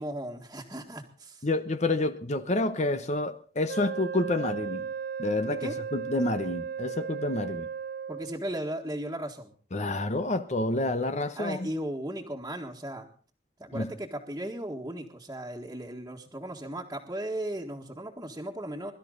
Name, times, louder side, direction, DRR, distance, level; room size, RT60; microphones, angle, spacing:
voice 1, 0.0-1.4 5.5-5.8 8.1-9.5 11.3-13.1 13.6-18.9, right 1 dB, 15° right, -4 dB, 1.8 m, -36 dB
voice 2, 1.4-4.9 5.2-7.7 9.7-11.7 13.7-13.9, left 2 dB, 40° left, 10 dB, 0.9 m, -29 dB
Wind instrument woodwind instrument, 3.7-8.4, right 7 dB, 60° right, 1.0 m, -35 dB
22.5 x 12.5 x 4.0 m, 0.42 s
head